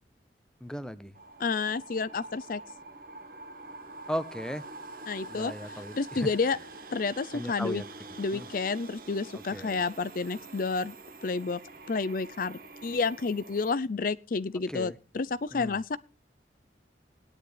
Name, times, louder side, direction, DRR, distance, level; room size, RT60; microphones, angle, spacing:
voice 1, 0.6-1.2 4.1-4.6 5.3-6.3 7.3-7.8 8.3-8.5 9.3-9.8 14.7-15.0 15.5-15.8, equal, 5° left, 0.9 m, -36 dB
sound 1, 1.2-13.7, right 3 dB, 50° right, 1.5 m, -46 dB
voice 2, 1.4-2.6 5.1-6.6 6.9-7.8 8.2-10.9 11.2-11.6 11.9-16.0, left 4 dB, 50° left, 0.5 m, -30 dB
18.0 x 10.0 x 3.3 m
head